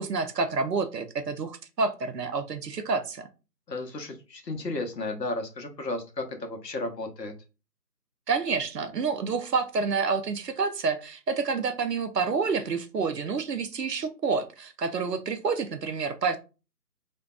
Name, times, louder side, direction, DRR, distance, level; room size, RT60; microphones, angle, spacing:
voice 1, 0.0-3.3 8.3-16.4, right 4 dB, 75° right, 0.6 m, -28 dB
voice 2, 3.7-7.3, left 2 dB, 80° left, 0.8 m, -33 dB
2.5 x 2.2 x 2.3 m
figure-of-eight pair, 160°, 50 cm